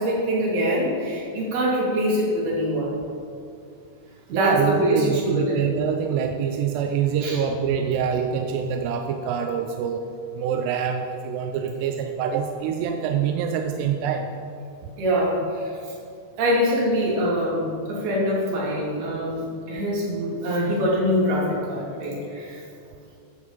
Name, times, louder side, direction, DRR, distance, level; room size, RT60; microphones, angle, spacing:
voice 1, 0.0-2.9 4.3-5.6 7.2-7.4 15.0-15.7 16.4-22.6, equal, 60° right, -5 dB, 4.4 m, -24 dB
voice 2, 4.3-10.0 10.3-14.3, right 7 dB, 80° right, 5 dB, 2.5 m, -25 dB
10.5 x 6.8 x 7.4 m, 2.4 s
omnidirectional pair, 5.3 m